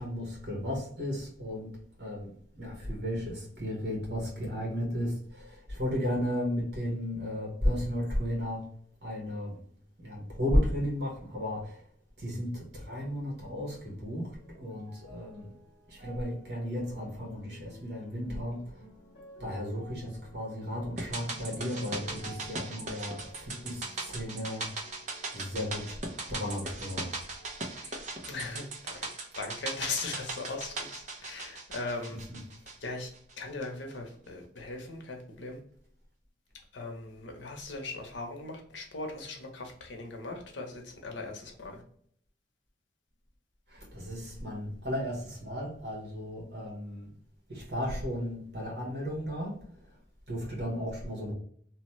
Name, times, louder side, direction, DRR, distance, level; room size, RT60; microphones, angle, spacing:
voice 1, 0.0-1.7 2.0-8.6 9.0-9.6 10.0-11.8 12.2-15.5 15.9-18.9 19.4-24.7 25.3-26.0 26.3-27.2 32.3-32.4 43.7-47.1 47.5-49.6 50.3-51.3, equal, 60° right, -1 dB, 1.3 m, -34 dB
sound 1, 13.5-27.0 27.3-28.3 28.9-29.0, equal, 65° left, 0.9 m, -54 dB
sound 2, 21.0-33.3 33.6-33.7, right 3 dB, 40° right, 0.6 m, -39 dB
voice 2, 28.3-29.1 29.4-32.2 32.8-33.1 33.4-35.6 36.7-41.8, left 3 dB, 85° left, 2 dB, 0.8 m, -39 dB
3.0 x 2.1 x 3.0 m, 0.63 s
head